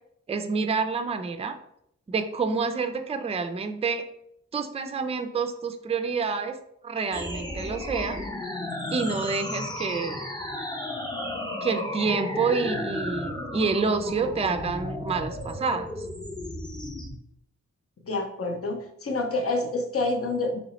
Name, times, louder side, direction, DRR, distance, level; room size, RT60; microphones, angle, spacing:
voice 1, 0.3-1.6 2.1-4.0 4.5-6.6 6.8-8.2 8.9-10.3 11.6-16.1, right 4 dB, 20° right, 8 dB, 0.4 m, -28 dB
sound 1, 7.1-17.1, left 1 dB, 15° left, 0.8 m, -34 dB
voice 2, 18.0-20.6, left 2 dB, 50° left, 4 dB, 0.7 m, -28 dB
3.1 x 3.0 x 4.0 m, 0.74 s
wide cardioid pair, 70°, 30 cm